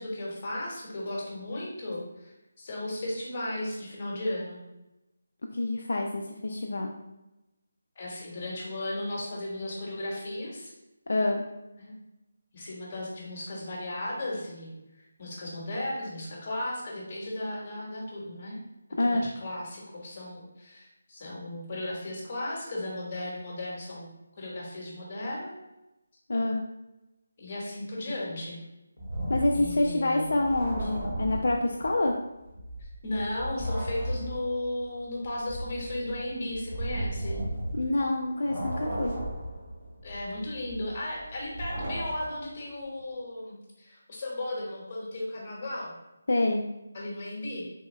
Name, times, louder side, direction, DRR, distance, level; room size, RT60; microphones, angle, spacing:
voice 1, 0.0-4.6 7.9-10.7 11.8-11.9 12.5-14.7 14.9-18.6 19.0-25.5 27.4-28.6 29.5-30.3 32.8-37.4 40.0-45.9 46.9-47.6, left 1 dB, 35° left, -3 dB, 1.1 m, -35 dB
voice 2, 5.5-6.9 11.1-11.4 19.0-19.3 26.3-26.6 29.3-32.1 37.7-39.1 46.3-46.6, left 2 dB, 70° left, 1 dB, 0.3 m, -27 dB
sound 1, 29.0-32.1 32.4-38.1 38.4-42.5, right 1 dB, 30° right, 1.1 m, -35 dB
3.5 x 2.2 x 3.1 m, 0.97 s
figure-of-eight pair, 160°, 0 cm